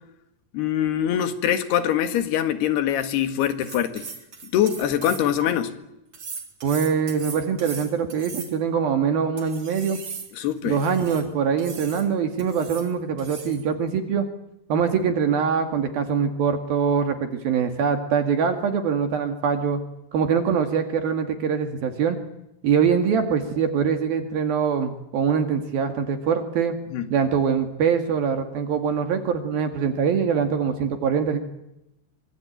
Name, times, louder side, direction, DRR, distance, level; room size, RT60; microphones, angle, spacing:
voice 1, 0.5-4.1 4.4-5.7 10.3-10.8 26.9-27.1, left 10 dB, 75° left, 3.8 m, -23 dB
sound 1, 3.4-5.5 6.1-8.8 9.4-11.2 11.6-12.1 12.4-12.9 13.2-13.6, right 5 dB, 40° right, 5.0 m, -38 dB
voice 2, 6.6-10.0 10.7-14.3 14.7-19.8 20.1-22.2 22.6-26.8 27.1-31.4, right 6 dB, 65° right, 3.7 m, -23 dB
25.5 x 25.0 x 9.3 m
omnidirectional pair, 4.8 m